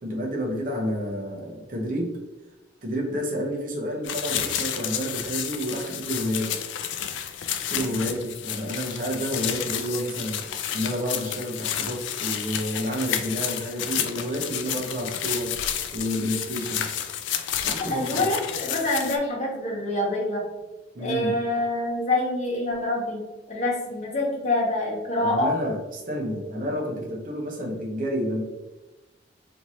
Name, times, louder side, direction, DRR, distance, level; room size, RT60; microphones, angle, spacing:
voice 1, 0.0-2.2 2.8-6.6 7.7-15.6 15.9-16.9 17.6-18.3 20.9-21.4 25.2-28.4, equal, 45° right, -1 dB, 0.8 m, -30 dB
sound 1, 4.0-19.2, left 9 dB, 80° left, 0.4 m, -31 dB
voice 2, 7.7-8.0 17.9-20.4 21.0-23.2 23.5-25.5 26.6-26.7, left 1 dB, 40° left, -4 dB, 1.2 m, -26 dB
4.4 x 2.8 x 3.0 m, 1.1 s
head